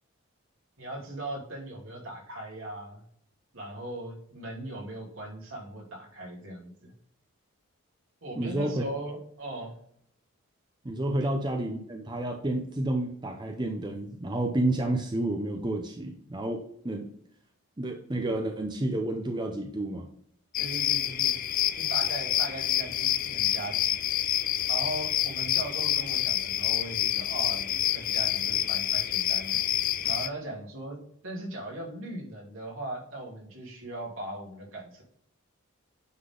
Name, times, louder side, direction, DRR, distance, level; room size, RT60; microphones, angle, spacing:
voice 1, 0.8-3.0 3.5-6.9 8.2-9.7 11.2-11.3 20.6-21.3 21.8-23.9 24.7-29.6 30.0-35.0, right 1 dB, 70° right, -2 dB, 2.9 m, -39 dB
voice 2, 8.3-8.8 10.8-17.1 17.8-20.1, right 1 dB, 20° right, 3 dB, 0.6 m, -30 dB
sound 1, 20.5-30.3, left 11 dB, 40° left, 0.3 m, -27 dB
9.5 x 3.9 x 3.8 m, 0.67 s
head